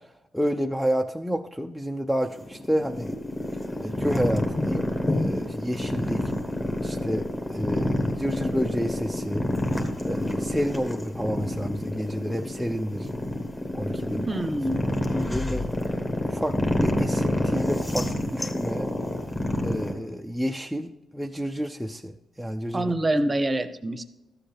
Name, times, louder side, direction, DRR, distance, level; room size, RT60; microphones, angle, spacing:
voice 1, 0.3-3.1 3.8-6.2 6.8-9.5 10.1-13.1 13.7-14.3 14.8-15.6 16.2-16.6 16.8-18.9 19.6-22.1 22.4-22.9, equal, ahead, 2 dB, 0.5 m, -30 dB
sound 1, 2.2-19.9, left 1 dB, 20° left, 1.4 m, -28 dB
voice 2, 14.1-14.8 22.7-24.0, right 1 dB, 25° right, 11 dB, 0.8 m, -26 dB
13.0 x 7.7 x 3.4 m, 0.99 s
cardioid pair, 115°, 0 cm